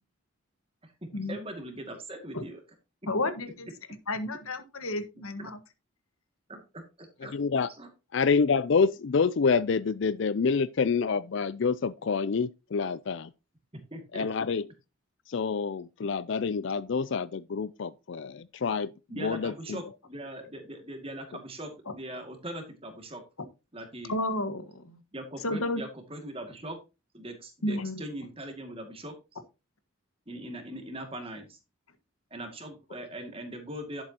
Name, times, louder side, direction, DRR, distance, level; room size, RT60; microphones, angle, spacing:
voice 1, 1.2-2.6 5.4-5.5 6.5-7.3 7.7-7.9 13.9-14.3 19.1-23.2 23.7-24.2 25.1-26.8 27.1-29.4 30.3-31.6 32.3-34.0, right 1 dB, 25° right, 2.2 m, -41 dB
voice 2, 3.1-3.7 4.1-5.5 24.1-25.0 25.4-25.8 27.6-28.0, left 1 dB, 85° left, 1.5 m, -31 dB
voice 3, 7.3-7.7 8.1-13.3 14.1-14.6 15.3-18.9 19.2-19.5, left 5 dB, 60° left, 0.4 m, -27 dB
11.0 x 7.9 x 2.9 m
head